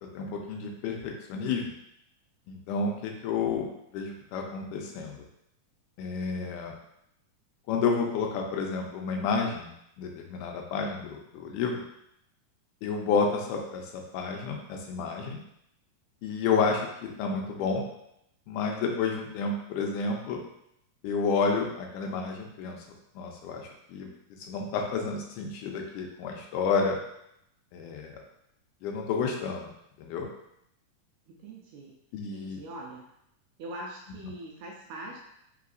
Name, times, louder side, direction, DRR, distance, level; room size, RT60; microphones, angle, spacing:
voice 1, 0.0-1.7 2.5-3.7 3.9-5.3 6.0-6.8 7.7-9.7 10.0-11.8 12.8-15.4 16.2-17.9 18.5-20.4 21.0-22.8 23.2-24.1 24.5-27.0 27.7-28.2 28.8-29.7 30.0-30.3 32.1-32.6, left 5 dB, 80° left, 2 dB, 2.0 m, -30 dB
voice 2, 31.3-33.0 33.6-35.2, right 1 dB, 80° right, -2 dB, 1.6 m, -43 dB
4.7 x 3.5 x 2.5 m, 0.78 s
omnidirectional pair, 3.8 m